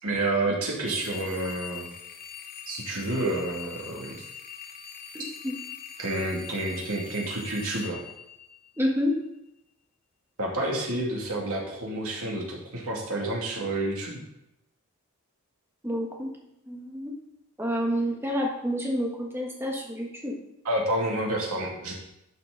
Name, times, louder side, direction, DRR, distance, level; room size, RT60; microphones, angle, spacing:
voice 1, 0.0-1.9 2.7-4.2 6.0-8.0 10.4-14.2 20.6-21.9, right 2 dB, 80° right, -2 dB, 2.6 m, -29 dB
sound 1, 0.8-9.0, left 8 dB, 40° left, 0.9 m, -43 dB
voice 2, 5.1-5.5 8.8-9.2 15.8-16.3 16.7-17.1 17.6-20.4, equal, 10° right, -1 dB, 1.5 m, -29 dB
12.0 x 6.3 x 3.9 m, 0.84 s
head